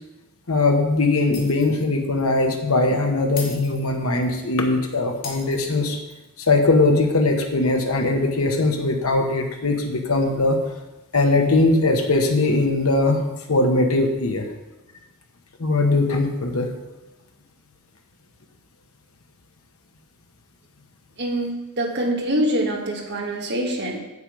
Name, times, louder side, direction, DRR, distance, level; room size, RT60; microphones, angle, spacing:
voice 1, 0.5-6.0 6.5-10.6 11.1-13.2 13.5-14.4 15.6-16.7, left 2 dB, 85° left, 3 dB, 1.2 m, -20 dB
Shatter, 1.3-1.9 2.2-2.3 3.4-4.4 5.2-6.2, left 5 dB, 45° left, 2.1 m, -38 dB
voice 2, 21.2-24.0, right 1 dB, 55° right, 0 dB, 1.9 m, -25 dB
8.0 x 7.8 x 5.3 m, 1.1 s
head